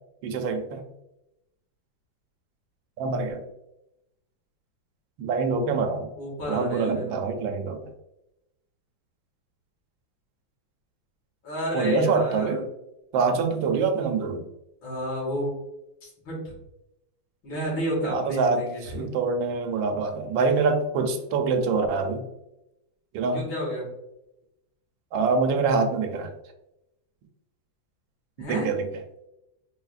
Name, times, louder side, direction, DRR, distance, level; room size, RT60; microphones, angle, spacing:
voice 1, 0.2-0.8 3.0-3.4 5.2-6.1 6.5-7.9 11.7-12.7 13.1-14.5 18.0-22.2 23.1-23.5 25.1-26.3 28.5-28.9, right 4 dB, 80° right, 5 dB, 1.3 m, -25 dB
voice 2, 6.2-7.2 11.4-12.6 14.8-15.6 16.0-16.4 17.4-18.8 23.3-23.9 28.4-28.7, equal, 80° left, -4 dB, 2.5 m, -30 dB
4.7 x 3.3 x 2.4 m, 0.88 s
omnidirectional pair, 2.1 m